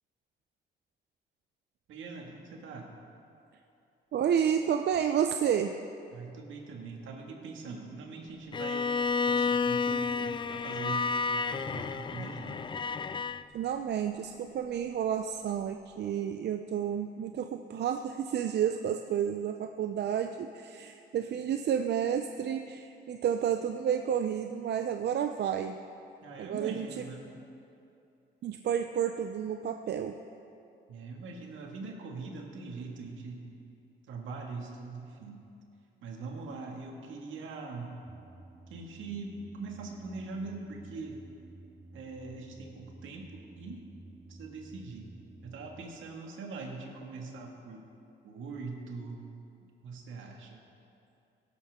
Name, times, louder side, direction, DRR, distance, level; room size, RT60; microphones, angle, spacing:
voice 1, 1.9-2.9 6.1-9.0 9.2-12.7 26.2-27.3 30.9-33.4 34.1-35.5 36.0-38.0 38.7-41.2 41.9-43.8 44.3-45.1 45.4-47.8 48.2-49.3 49.8-50.6, right 4 dB, 75° right, 1 dB, 2.0 m, -42 dB
voice 2, 4.1-5.8 13.5-25.8 26.4-27.0 28.4-30.2, right 8 dB, 60° right, 7 dB, 0.5 m, -31 dB
Bowed string instrument, 8.5-13.4, left 5 dB, 25° left, 0.3 m, -31 dB
sound 1, 38.1-45.8, right 2 dB, 10° right, 0.9 m, -52 dB
17.0 x 12.5 x 3.6 m, 2.6 s
cardioid pair, 90°, 20 cm